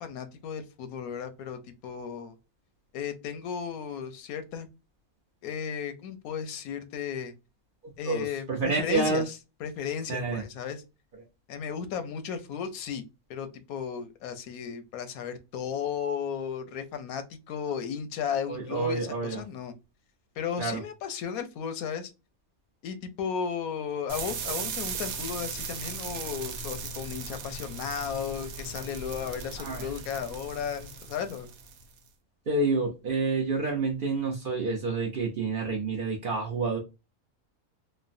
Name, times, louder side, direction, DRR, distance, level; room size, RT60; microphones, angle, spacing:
voice 1, 0.0-2.3 2.9-4.7 5.4-7.3 8.0-10.8 11.5-13.0 13.3-19.7 20.4-22.1 22.8-31.5, left 7 dB, 85° left, 1.1 m, -35 dB
voice 2, 8.1-9.3 10.1-10.4 18.5-19.4 20.6-20.8 29.6-29.8 32.5-36.8, right 3 dB, 60° right, 0.6 m, -28 dB
sound 1, 24.1-32.0, right 5 dB, 75° right, 1.1 m, -37 dB
3.1 x 2.1 x 2.4 m
omnidirectional pair, 1.5 m